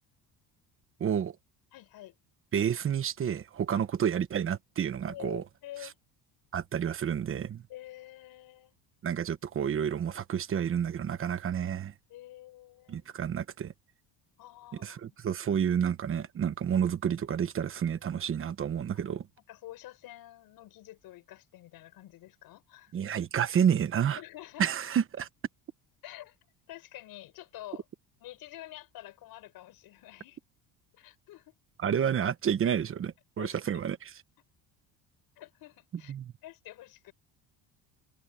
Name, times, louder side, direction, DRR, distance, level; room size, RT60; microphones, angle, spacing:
voice 1, 1.0-1.4 2.5-5.4 6.5-7.6 9.0-11.9 12.9-13.7 14.8-19.3 22.9-24.2 24.6-25.3 31.8-34.0 36.1-36.3, right 8 dB, 30° right, 1.2 m, -30 dB
voice 2, 1.7-2.1 3.7-3.8 5.1-6.0 7.7-8.7 12.1-13.0 14.4-15.1 19.5-22.9 24.2-24.7 26.0-26.4 26.7-27.8 28.2-30.4 31.0-31.5 33.4-33.8 35.3-36.1 36.4-37.1, left 15 dB, 60° left, 5.2 m, -48 dB
cardioid pair, 155°, 40 cm